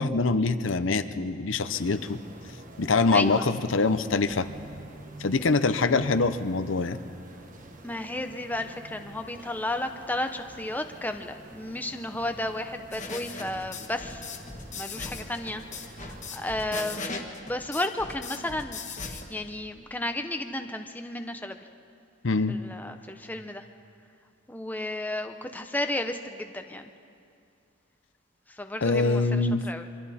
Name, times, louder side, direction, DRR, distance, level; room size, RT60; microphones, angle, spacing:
voice 1, 0.0-2.2 2.8-4.5 5.2-7.0 22.2-22.6 28.8-29.6, left 3 dB, 70° left, 10 dB, 0.8 m, -24 dB
sound 1, 1.6-17.0, right 1 dB, 40° right, 1.4 m, -47 dB
voice 2, 3.1-3.5 7.8-14.3 14.8-21.6 22.5-23.6 24.5-26.9 28.5-29.9, left 1 dB, 10° left, 6 dB, 0.8 m, -33 dB
sound 2, 12.9-19.2, left 4 dB, 35° left, 1.7 m, -38 dB
26.0 x 24.5 x 4.3 m, 2.4 s
head